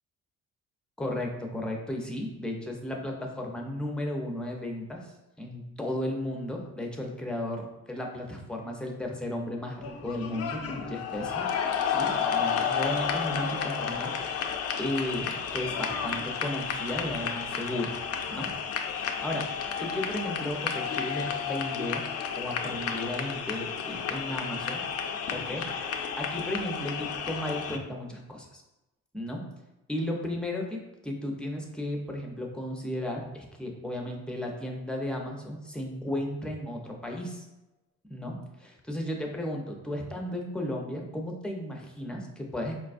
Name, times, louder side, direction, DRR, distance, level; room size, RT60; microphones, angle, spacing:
voice 1, 1.0-11.5 11.8-14.1 14.8-17.9 18.3-18.5 18.9-19.5 19.8-22.1 22.3-24.8 25.3-25.7 26.2-28.6 29.1-29.4 29.9-37.5 38.1-42.7, left 1 dB, 5° left, 1 dB, 0.6 m, -34 dB
sound 1, 9.8-27.8, left 7 dB, 55° left, 0.4 m, -32 dB
4.3 x 2.2 x 2.5 m, 0.98 s
cardioid pair, 90°, 30 cm